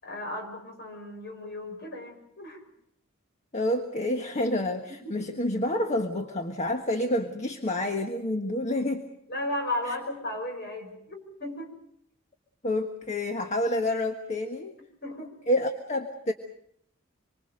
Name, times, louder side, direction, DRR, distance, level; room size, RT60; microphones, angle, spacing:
voice 1, 0.0-2.6 9.3-11.7 15.0-15.4, left 1 dB, 50° left, 4 dB, 6.4 m, -35 dB
voice 2, 3.5-9.0 12.6-14.8 15.5-16.3, left 1 dB, 35° left, 5 dB, 1.4 m, -28 dB
25.5 x 24.0 x 6.5 m, 0.72 s
head